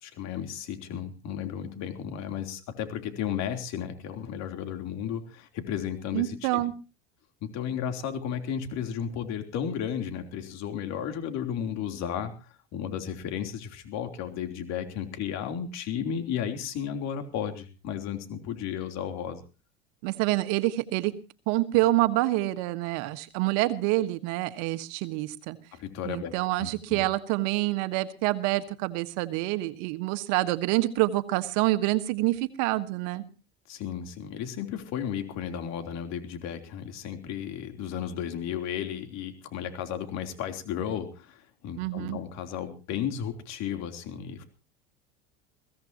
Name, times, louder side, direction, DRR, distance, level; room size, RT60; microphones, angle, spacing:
voice 1, 0.0-6.6 7.4-12.3 12.7-19.4 25.7-26.3 26.6-27.0 33.7-44.4, left 8 dB, 55° left, 6 dB, 3.5 m, -34 dB
voice 2, 6.1-6.7 20.0-21.1 21.5-25.6 26.0-33.2 41.8-42.2, right 18 dB, 65° right, 11 dB, 1.6 m, -27 dB
22.5 x 16.5 x 3.0 m, 0.34 s
hypercardioid pair, 85°, 32 cm